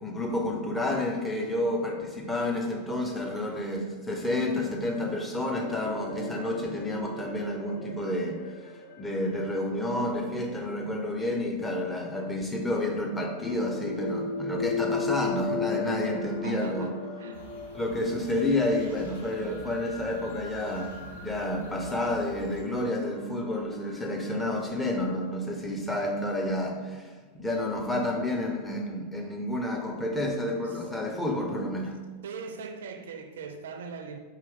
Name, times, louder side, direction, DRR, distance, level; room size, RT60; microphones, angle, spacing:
voice 1, 0.0-17.0 17.7-32.0, left 1 dB, 10° left, 0 dB, 0.7 m, -30 dB
sound 1, 5.6-11.6 12.7-25.2, left 4 dB, 55° left, 0.6 m, -38 dB
voice 2, 16.4-17.5 30.7-30.8 32.2-34.2, right 5 dB, 60° right, 6 dB, 0.4 m, -41 dB
sound 2, 17.3-22.6, left 3 dB, 80° left, 1.3 m, -49 dB
4.6 x 3.0 x 3.5 m, 1.4 s
figure-of-eight pair, 90°, 0 cm